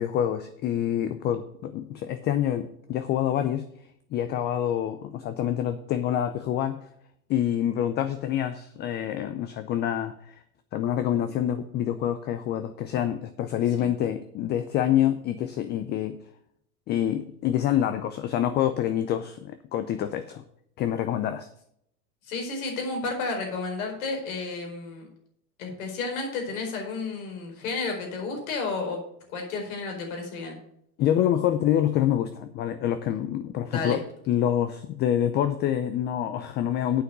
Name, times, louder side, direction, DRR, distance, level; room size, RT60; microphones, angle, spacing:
voice 1, 0.0-3.7 4.1-6.9 7.3-10.3 10.7-16.2 16.9-20.4 20.8-21.5 31.0-34.0 34.3-37.0, left 10 dB, 25° left, 11 dB, 0.5 m, -26 dB
voice 2, 22.2-25.1 25.6-29.0 29.3-30.6 33.6-34.0, left 3 dB, 65° left, 2 dB, 4.6 m, -32 dB
8.5 x 5.8 x 7.9 m, 0.71 s
hypercardioid pair, 115°, 46 cm